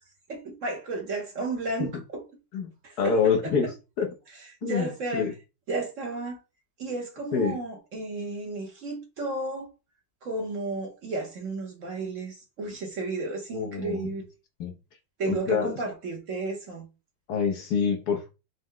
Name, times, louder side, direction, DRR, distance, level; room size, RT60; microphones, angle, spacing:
voice 1, 0.3-2.2 2.8-3.7 4.3-5.3 5.7-6.4 6.8-9.7 10.2-14.2 15.2-16.9, right 2 dB, 55° right, 1.0 m, -33 dB
voice 2, 3.0-3.7 4.0-4.1 4.6-5.3 7.3-7.6 13.5-14.1 14.6-14.7 15.3-15.7 17.3-18.3, left 6 dB, 70° left, 1.1 m, -26 dB
5.3 x 2.0 x 3.7 m
omnidirectional pair, 2.1 m